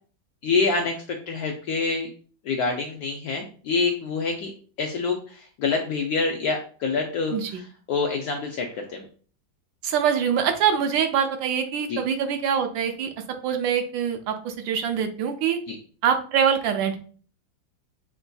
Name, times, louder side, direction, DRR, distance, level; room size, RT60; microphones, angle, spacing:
voice 1, 0.4-2.1 2.4-4.5 4.8-9.1 11.9-12.0 15.7-15.8, left 4 dB, 75° left, 2 dB, 0.9 m, -26 dB
voice 2, 9.8-13.1 13.4-15.6 16.0-17.0, right 8 dB, 80° right, 6 dB, 1.3 m, -24 dB
6.0 x 2.6 x 2.2 m, 0.42 s
omnidirectional pair, 2.1 m